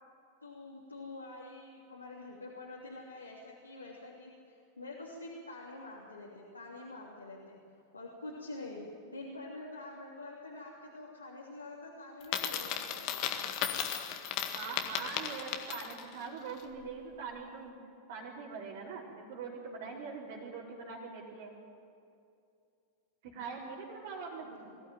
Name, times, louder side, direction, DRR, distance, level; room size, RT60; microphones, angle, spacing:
voice 1, 0.4-7.6 7.9-13.3 24.4-24.5, left 2 dB, 80° left, -4 dB, 3.1 m, -46 dB
Coin (dropping), 12.2-16.1, left 9 dB, 40° left, 1.9 m, -35 dB
voice 2, 14.5-17.8 18.1-21.5 23.2-24.6, right 5 dB, 50° right, -6 dB, 4.1 m, -43 dB
22.5 x 16.0 x 9.2 m, 2.5 s
figure-of-eight pair, 90°, 0 cm